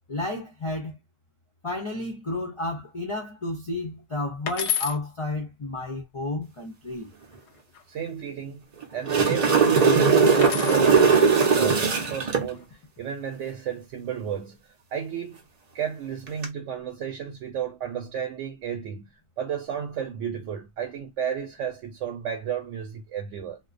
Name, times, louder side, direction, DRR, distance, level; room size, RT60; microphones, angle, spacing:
voice 1, 0.1-0.9 1.6-7.1, left 2 dB, 45° left, 0.4 m, -31 dB
sound 1, 4.5-5.0 7.2-7.8 10.4-10.9 12.2-12.6, left 10 dB, 65° left, 0.8 m, -31 dB
voice 2, 7.9-8.6 8.9-11.0 11.4-14.6 14.9-15.4 15.7-23.6, right 8 dB, 70° right, 0.8 m, -33 dB
sound 2, 8.8-12.4 16.3-16.4, right 5 dB, 55° right, 0.4 m, -19 dB
2.4 x 2.1 x 2.4 m
omnidirectional pair, 1.4 m